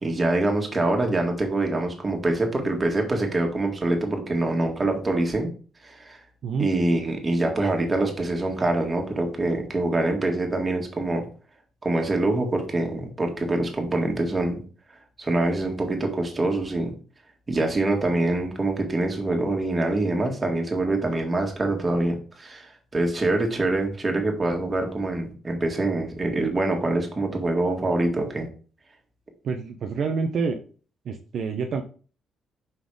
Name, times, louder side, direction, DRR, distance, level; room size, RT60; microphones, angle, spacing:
voice 1, 0.0-5.5 5.8-6.2 6.6-11.2 11.8-14.6 15.2-16.9 17.5-28.5, right 2 dB, 25° right, 2 dB, 1.9 m, -25 dB
voice 2, 29.4-30.6 31.0-31.8, right 5 dB, 60° right, 4 dB, 0.7 m, -27 dB
5.6 x 4.1 x 4.9 m, 0.39 s
cardioid pair, 90°, 0 cm